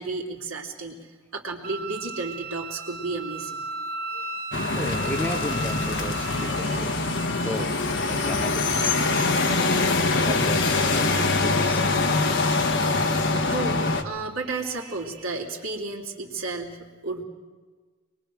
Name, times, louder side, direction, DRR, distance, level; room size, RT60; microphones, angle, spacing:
voice 1, 0.0-3.6 6.3-7.6 7.9-8.5 8.8-9.4 13.5-16.8 17.0-17.2, right 3 dB, 70° right, 1 dB, 3.1 m, -33 dB
Wind instrument woodwind instrument, 1.6-6.8, right 2 dB, 45° right, 1.8 m, -35 dB
sound 1, 4.5-14.0, left 3 dB, 60° left, 1.4 m, -24 dB
voice 2, 4.7-7.0 7.4-7.7 8.0-12.2, equal, 10° left, 4 dB, 1.3 m, -35 dB
23.5 x 22.0 x 6.3 m, 1.4 s
head